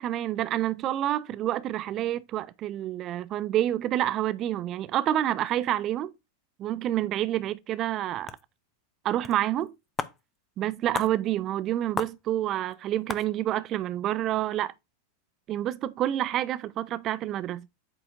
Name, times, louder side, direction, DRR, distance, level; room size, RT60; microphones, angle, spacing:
voice 1, 0.0-6.1 6.6-8.3 9.0-9.7 10.6-14.7 15.5-17.7, right 12 dB, 35° right, 0.4 m, -28 dB
sound 1, 8.3-8.4 9.2-9.3 9.6-9.7 10.0-10.2 10.9-11.1 12.0-12.2 12.7-12.8 13.1-13.2, left 5 dB, 15° left, 0.6 m, -32 dB
8.5 x 6.8 x 2.6 m
figure-of-eight pair, 90°, 0 cm